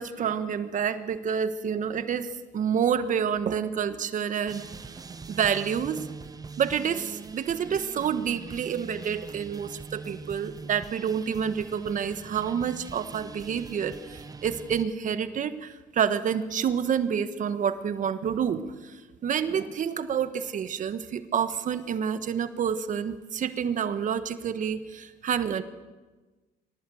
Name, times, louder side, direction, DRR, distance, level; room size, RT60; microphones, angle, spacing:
voice 1, 0.0-4.6 5.3-6.1 6.6-25.6, right 7 dB, 50° right, 11 dB, 1.4 m, -28 dB
sound 1, 4.5-14.9, right 4 dB, 20° right, 0.9 m, -42 dB
24.0 x 18.5 x 7.9 m, 1.3 s
cardioid pair, 110°, 17 cm